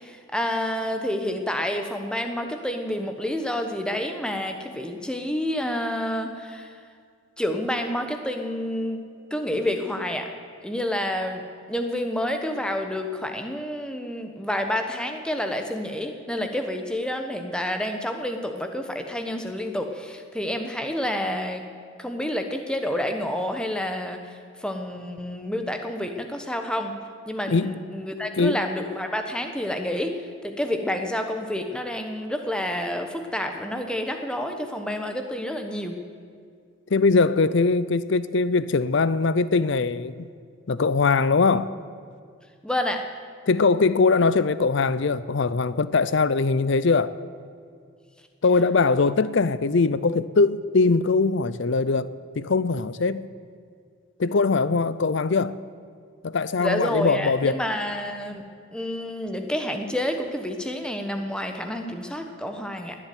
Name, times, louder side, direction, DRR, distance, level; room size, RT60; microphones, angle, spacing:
voice 1, 0.0-6.8 7.4-9.0 9.3-10.3 10.6-21.6 22.0-26.9 27.3-35.9 42.6-43.0 56.6-58.4 58.7-63.0, left 1 dB, 5° left, 1.1 m, -29 dB
voice 2, 36.9-40.3 40.7-41.7 43.5-47.1 48.4-52.1 52.4-53.3 54.2-55.6 56.2-57.6, left 4 dB, 55° left, 0.5 m, -21 dB
19.0 x 7.5 x 9.5 m
head